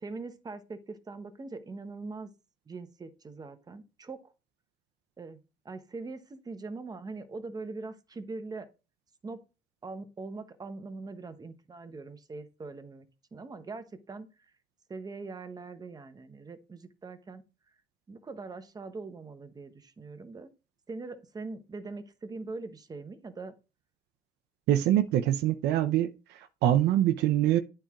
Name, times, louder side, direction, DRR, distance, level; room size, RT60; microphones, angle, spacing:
voice 1, 0.0-2.3 2.7-4.3 5.2-5.4 5.6-8.7 9.2-9.4 9.8-13.1 13.3-14.5 14.9-17.4 18.1-20.5 20.9-23.5, right 3 dB, 20° right, 0.9 m, -42 dB
voice 2, 24.7-26.1 26.6-27.6, right 12 dB, 80° right, 0.7 m, -24 dB
9.0 x 4.4 x 3.6 m
cardioid pair, 110°, 17 cm